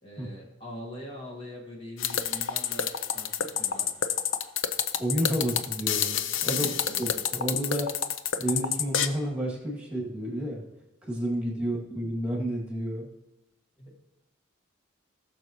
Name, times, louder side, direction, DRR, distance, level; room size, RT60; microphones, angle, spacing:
voice 1, 0.0-4.0 6.5-7.3 11.5-11.8 13.8-14.0, left 1 dB, 30° left, -2 dB, 1.7 m, -43 dB
sound 1, 2.0-9.1, left 8 dB, 80° left, 0.6 m, -28 dB
voice 2, 5.0-6.7 7.0-8.0 8.4-10.6 11.1-13.1, right 1 dB, 5° right, -3 dB, 2.3 m, -30 dB
18.0 x 6.6 x 3.0 m, 0.93 s
head